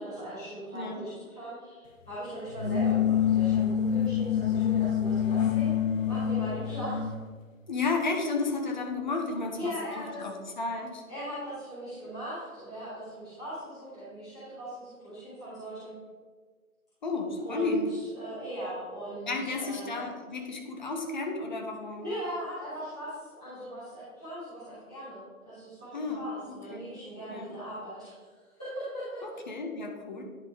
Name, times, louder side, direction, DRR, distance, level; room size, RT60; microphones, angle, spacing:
voice 1, 0.0-7.1 9.5-10.2 11.1-15.9 17.4-17.8 18.2-20.0 22.0-28.1 28.6-29.2, right 1 dB, 5° right, -18 dB, 0.6 m, -39 dB
sound 1, 2.5-7.3, left 9 dB, 65° left, 0.6 m, -26 dB
voice 2, 7.7-11.0 17.0-17.8 19.2-22.1 25.9-26.9 27.3-27.6 29.2-30.2, left 3 dB, 30° left, 2 dB, 0.9 m, -33 dB
10.5 x 3.4 x 4.5 m, 1.5 s
figure-of-eight pair, 140°, 43 cm